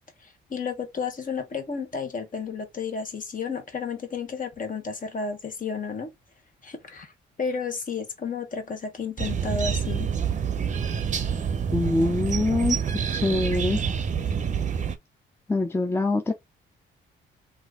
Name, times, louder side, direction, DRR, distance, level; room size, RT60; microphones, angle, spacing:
voice 1, 0.2-6.1 6.6-7.1 7.4-10.1, left 5 dB, 40° left, 1.2 m, -32 dB
sound 1, 9.2-15.0, right 7 dB, 40° right, 0.6 m, -27 dB
voice 2, 11.7-12.8 13.1-13.8 15.5-16.3, left 2 dB, 10° left, 0.6 m, -24 dB
3.0 x 2.6 x 3.6 m
cardioid pair, 90°, 20 cm